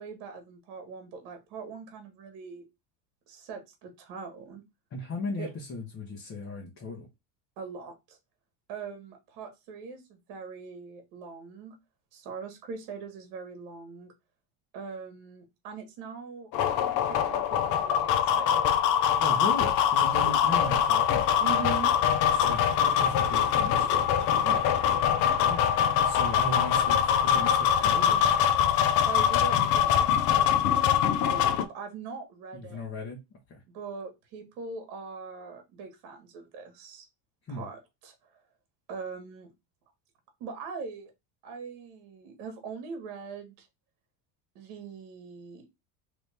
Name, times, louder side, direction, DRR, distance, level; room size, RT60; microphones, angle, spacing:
voice 1, 0.0-2.6 3.3-4.6 5.4-5.5 7.6-8.2 8.7-11.7 12.1-14.1 14.7-18.8 20.2-20.5 21.4-21.9 24.4-24.7 29.1-31.0 31.3-32.9 33.7-37.1 37.5-38.3 38.9-39.5 40.4-41.1 41.4-43.7 44.5-45.6, right 5 dB, 65° right, 5 dB, 1.3 m, -41 dB
voice 2, 4.9-7.1 19.2-21.2 22.3-23.9 25.3-28.4 32.5-33.2 33.5-33.6 37.5-37.7, left 2 dB, 30° left, -2 dB, 1.0 m, -37 dB
sound 1, 16.5-31.7, left 9 dB, 45° left, 0.5 m, -24 dB
3.0 x 2.5 x 3.3 m, 0.22 s
supercardioid pair, 130°, 44 cm